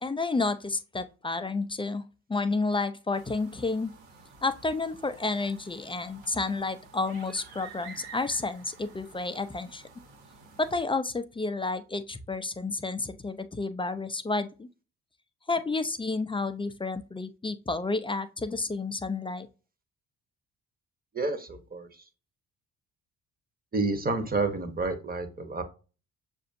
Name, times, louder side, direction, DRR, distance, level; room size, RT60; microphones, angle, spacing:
voice 1, 0.0-2.0 2.3-3.9 4.4-9.8 10.6-14.7 15.5-19.5, left 3 dB, 15° left, 0.4 m, -30 dB
sound 1, 3.1-10.8, right 4 dB, 70° right, 1.3 m, -51 dB
voice 2, 21.1-22.0 23.7-25.6, right 3 dB, 25° right, 1.0 m, -30 dB
6.5 x 2.6 x 2.5 m
hypercardioid pair, 50°, 39 cm